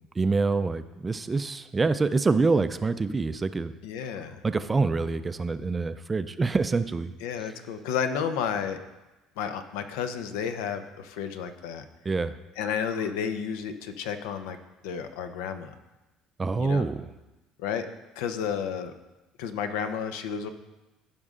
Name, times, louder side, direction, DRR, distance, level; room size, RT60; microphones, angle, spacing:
voice 1, 0.2-3.7 4.4-7.1 12.1-12.4 16.4-17.0, right 3 dB, 20° right, 12 dB, 0.4 m, -26 dB
voice 2, 3.8-4.4 7.2-8.8 9.4-11.8 12.6-14.6 14.8-15.7 16.6-16.9 17.6-17.9 18.2-18.9 19.4-20.5, left 7 dB, 90° left, 8 dB, 0.7 m, -31 dB
15.5 x 5.4 x 3.7 m, 1.1 s
cardioid pair, 125°, 0 cm